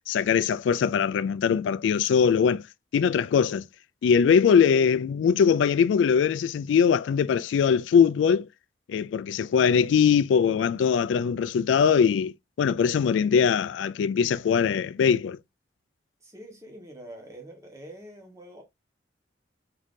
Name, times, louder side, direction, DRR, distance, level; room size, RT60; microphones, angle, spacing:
voice 1, 0.1-2.6 2.9-3.6 4.0-8.5 8.9-12.3 12.6-15.4, left 7 dB, 80° left, 0.3 m, -21 dB
voice 2, 16.2-18.6, right 1 dB, 15° right, 1.0 m, -45 dB
3.8 x 2.7 x 3.6 m
head